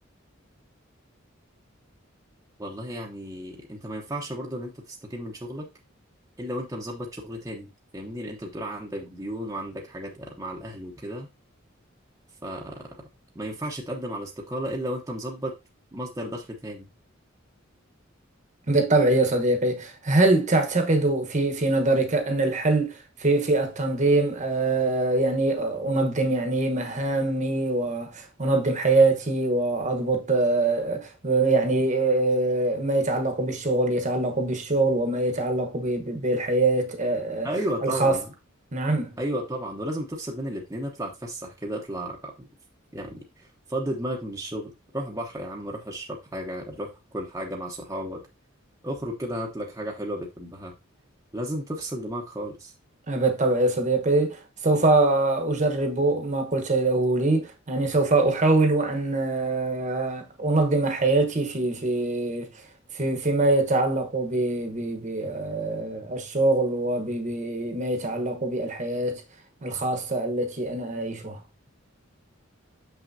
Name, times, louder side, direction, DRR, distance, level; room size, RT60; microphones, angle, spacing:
voice 1, 2.6-5.7 6.4-11.3 12.4-13.1 13.3-15.5 15.9-16.9 37.4-38.3 39.2-42.5 42.9-48.2 48.8-50.7 51.3-52.7, right 1 dB, 15° right, 0.9 m, -33 dB
voice 2, 18.7-37.5 37.8-38.2 38.7-39.2 53.1-62.5 62.9-69.2 69.6-71.4, right 2 dB, 40° right, 1.1 m, -24 dB
6.4 x 5.9 x 2.7 m
head